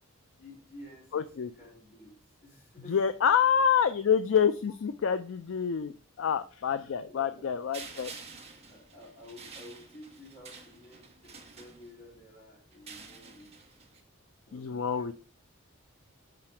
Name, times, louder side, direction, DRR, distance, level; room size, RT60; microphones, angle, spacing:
voice 1, 0.4-2.1 2.4-3.0 7.1-7.5 8.6-13.7 14.5-15.1, left 1 dB, 45° left, -3 dB, 3.2 m, -52 dB
voice 2, 1.1-1.5 2.9-8.1 14.5-15.1, left 7 dB, 65° left, 11 dB, 0.4 m, -27 dB
sound 1, 7.7-12.2 12.7-14.0, right 4 dB, 30° right, 1.1 m, -49 dB
5.8 x 4.8 x 4.4 m, 0.38 s
head